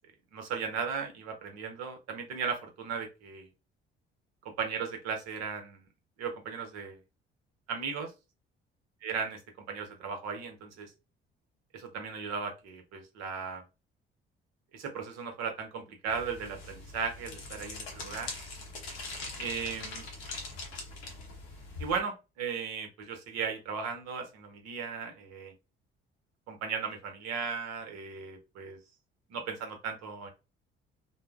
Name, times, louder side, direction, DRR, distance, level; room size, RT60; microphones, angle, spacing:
voice 1, 0.3-3.5 4.4-5.9 6.2-7.0 7.7-8.1 9.0-9.4 9.7-10.9 11.7-13.6 14.7-18.3 19.4-20.0 21.8-25.5 26.5-28.8 29.3-30.3, right 6 dB, 60° right, 4 dB, 0.8 m, -36 dB
sound 1, 16.1-22.0, left 3 dB, 80° left, 0.7 m, -42 dB
2.6 x 2.0 x 2.3 m, 0.27 s
figure-of-eight pair, 50°, 30 cm